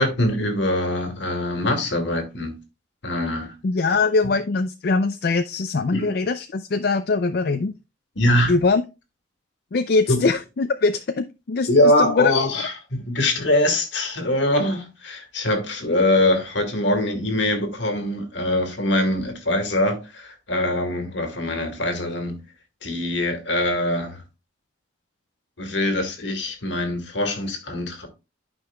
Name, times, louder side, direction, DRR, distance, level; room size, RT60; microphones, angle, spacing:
voice 1, 0.0-2.5 3.0-3.5 5.9-6.1 8.2-8.5 10.1-10.2 11.7-22.4 22.8-24.2 25.6-28.1, left 1 dB, 70° left, 1.8 m, -23 dB
voice 2, 3.6-7.7 8.5-8.8 9.7-11.7 12.0-12.3, left 4 dB, 55° left, 0.4 m, -22 dB
12.0 x 5.4 x 2.3 m
head